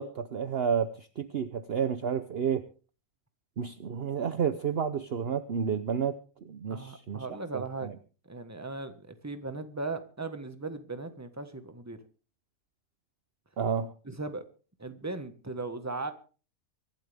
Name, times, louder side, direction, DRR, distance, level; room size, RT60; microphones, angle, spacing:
voice 1, 0.0-2.6 3.6-7.3 7.5-7.9 13.6-13.9, right 7 dB, 50° right, 12 dB, 1.0 m, -31 dB
voice 2, 6.7-7.9 8.3-12.0 14.0-14.4 14.8-16.1, right 3 dB, 10° right, 9 dB, 1.4 m, -37 dB
24.5 x 12.0 x 3.5 m, 0.36 s
omnidirectional pair, 1.5 m